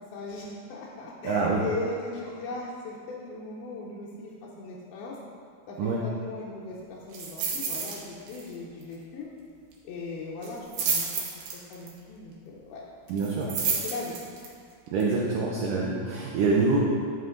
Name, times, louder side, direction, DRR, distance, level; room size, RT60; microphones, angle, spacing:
voice 1, 0.1-5.2 5.7-9.3 9.8-11.1 11.5-12.8 13.5-14.2, left 3 dB, 75° left, -5 dB, 2.4 m, -38 dB
voice 2, 1.2-1.6 5.8-6.0 13.1-13.5 14.9-16.8, right 4 dB, 85° right, -3 dB, 1.8 m, -25 dB
sound 1, 7.1-8.0 8.3-8.5 8.8-8.9 10.4-11.9 13.2-14.5 15.0-15.1, right 5 dB, 65° right, 2.4 m, -30 dB
11.0 x 5.5 x 3.8 m, 2.2 s
omnidirectional pair, 4.8 m